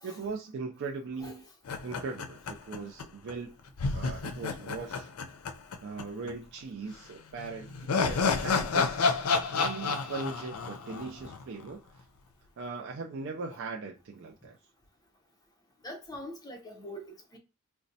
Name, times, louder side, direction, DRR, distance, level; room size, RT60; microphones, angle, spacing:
voice 1, 0.0-1.4 1.8-3.5 3.9-5.1 5.8-12.0 12.6-14.6, right 4 dB, 55° right, 0.4 m, -39 dB
sound 1, 1.7-3.0 3.3-3.4 3.8-6.0 6.3-6.4 7.4-11.7, left 4 dB, 75° left, 0.5 m, -30 dB
voice 2, 15.8-17.4, equal, 20° left, 0.7 m, -43 dB
4.0 x 2.2 x 2.6 m
head